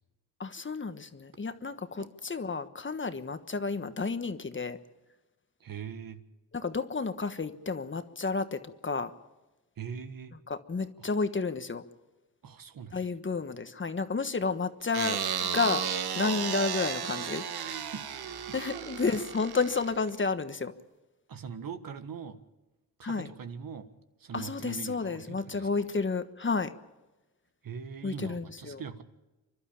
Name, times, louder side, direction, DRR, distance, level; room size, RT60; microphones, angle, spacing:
voice 1, 0.4-4.8 6.5-9.1 10.7-11.8 12.9-15.8 16.2-17.4 18.5-20.7 23.0-23.3 24.3-26.7 28.0-28.8, left 4 dB, 30° left, 1.3 m, -31 dB
voice 2, 5.6-6.2 9.8-10.4 11.0-11.1 12.4-13.0 17.6-18.6 21.3-22.4 23.0-23.9 24.2-25.8 27.6-29.0, right 7 dB, 60° right, 1.6 m, -42 dB
sound 1, 14.9-20.2, right 8 dB, 75° right, 1.5 m, -34 dB
28.5 x 12.0 x 8.8 m
cardioid pair, 85°, 38 cm